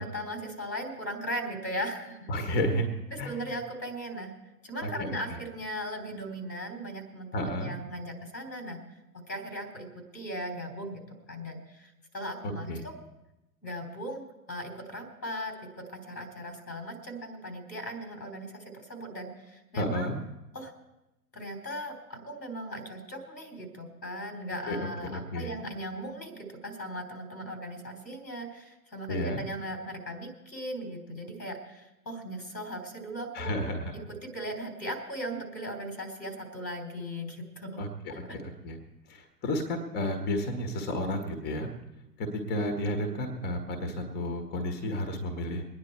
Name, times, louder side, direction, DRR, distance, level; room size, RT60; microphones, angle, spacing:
voice 1, 0.0-2.3 3.1-4.3 4.6-8.8 9.3-12.9 13.6-20.1 20.5-20.7 21.3-33.6 33.9-37.8 38.1-38.4, equal, 85° left, 4 dB, 3.5 m, -38 dB
voice 2, 2.3-2.9 3.2-3.6 4.8-5.4 7.3-7.7 12.4-12.8 19.8-20.2 24.7-25.5 29.1-29.4 33.3-33.9 37.8-38.8 39.1-41.7 42.2-45.6, left 1 dB, 20° left, 6 dB, 1.5 m, -32 dB
23.5 x 9.7 x 4.4 m, 0.97 s
figure-of-eight pair, 110°, 49 cm